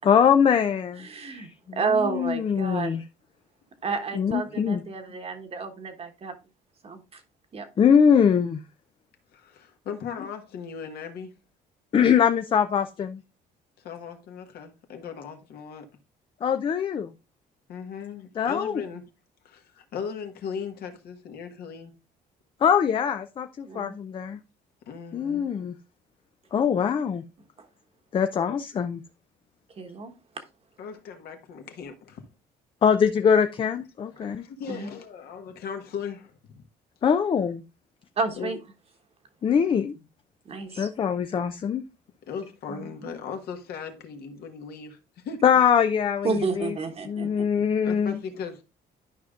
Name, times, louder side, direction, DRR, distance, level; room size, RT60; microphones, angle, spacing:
voice 1, 0.0-3.0 4.1-4.8 7.8-8.6 11.9-13.2 16.4-17.1 18.4-18.8 22.6-24.4 25.1-25.7 26.5-27.2 28.1-29.0 32.8-34.5 37.0-37.6 39.4-39.9 40.7-41.8 45.4-46.7 47.0-48.2, left 7 dB, 30° left, 0.4 m, -23 dB
voice 2, 1.0-3.0 3.8-6.3 6.8-7.0 7.5-7.7 23.7-24.0 29.8-30.1 34.2-34.3 34.7-34.9 38.2-38.6 40.5-40.9 42.7-43.1 46.2-47.4, right 4 dB, 35° right, 1.2 m, -30 dB
voice 3, 9.3-11.3 13.8-15.9 17.7-19.0 19.4-21.9 24.9-25.5 30.8-32.2 34.1-36.6 38.4-38.5 39.9-40.0 42.3-45.4 47.8-48.6, left 6 dB, 70° left, 1.3 m, -38 dB
11.5 x 5.0 x 2.4 m
cardioid pair, 110°, 17 cm